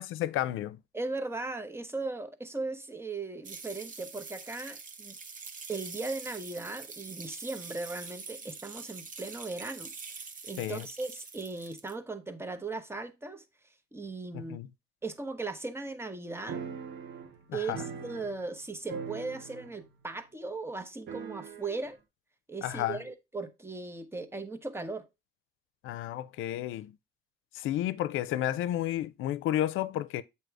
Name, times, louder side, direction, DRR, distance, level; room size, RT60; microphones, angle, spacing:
voice 1, 0.0-0.8 10.6-10.8 14.5-14.7 17.5-17.8 22.6-23.0 25.8-26.9 27.5-30.2, left 13 dB, 85° left, 0.5 m, -31 dB
voice 2, 0.9-5.1 5.7-9.9 10.4-13.4 13.9-14.6 15.0-16.6 17.5-22.0 22.5-25.1, right 3 dB, 10° right, 0.9 m, -38 dB
sound 1, 3.4-11.9, right 4 dB, 40° right, 1.0 m, -45 dB
sound 2, 16.5-18.6 18.9-19.9 20.1-20.2 21.1-21.9, right 6 dB, 75° right, 1.1 m, -41 dB
7.8 x 2.8 x 4.6 m
cardioid pair, 90°, 20 cm